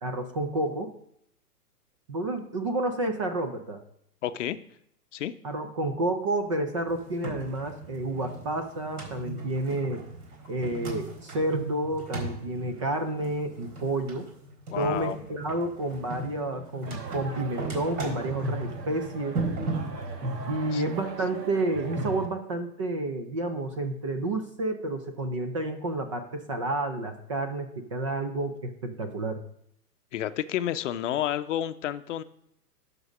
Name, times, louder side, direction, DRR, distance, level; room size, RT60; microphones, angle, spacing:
voice 1, 0.0-0.9 2.1-3.8 5.4-10.0 10.5-14.3 14.8-19.4 20.5-29.4, right 2 dB, 20° right, 7 dB, 0.4 m, -30 dB
voice 2, 4.2-4.6 5.1-5.3 14.7-15.2 20.7-20.8 30.1-32.2, left 11 dB, 50° left, 12 dB, 0.7 m, -30 dB
sound 1, 6.9-20.5, right 2 dB, 60° right, 4.2 m, -37 dB
sound 2, 16.9-22.3, right 2 dB, 85° right, 1.7 m, -37 dB
12.0 x 4.0 x 6.1 m, 0.73 s
hypercardioid pair, 140°, 48 cm